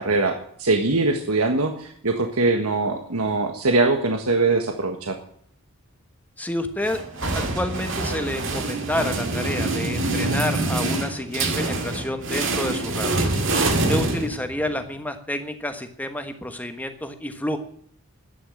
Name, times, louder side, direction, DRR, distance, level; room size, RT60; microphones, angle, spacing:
voice 1, 0.0-5.1, right 3 dB, 85° right, 5 dB, 1.5 m, -22 dB
voice 2, 6.4-7.0 7.3-13.3 13.7-17.6, left 1 dB, 5° left, 7 dB, 1.3 m, -29 dB
sound 1, 6.8-14.8, right 2 dB, 60° right, 2.2 m, -25 dB
12.5 x 9.7 x 9.3 m, 0.63 s
head